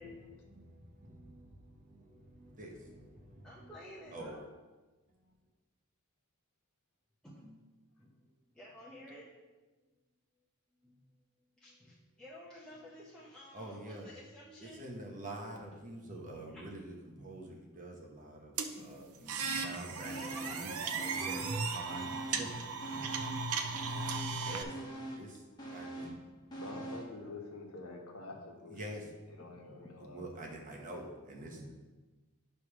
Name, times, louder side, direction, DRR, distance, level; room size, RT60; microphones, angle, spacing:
voice 1, 0.0-4.4 5.1-5.4 13.5-14.1 14.6-20.8 21.2-22.6 24.4-24.8 25.1-26.2 28.7-29.1 30.0-31.7, right 1 dB, 35° right, 0 dB, 1.0 m, -47 dB
voice 2, 3.4-4.4 7.2-7.6 8.0-9.6 10.8-11.0 11.6-14.9 16.1-16.2 16.5-16.6 19.4-21.7 22.0-25.0 26.0-26.2 26.7-26.9 29.4-30.3 31.3-31.7, left 1 dB, 5° left, -7 dB, 0.9 m, -52 dB
sound 1, 18.6-24.6, right 4 dB, 90° right, 0.7 m, -37 dB
sound 2, 20.0-20.7 21.0-22.5 22.8-27.2 27.5-27.6, right 1 dB, 20° left, 1.4 m, -44 dB
voice 3, 26.6-30.2, left 2 dB, 85° left, 1 dB, 1.3 m, -47 dB
9.2 x 3.3 x 5.9 m, 1.2 s
head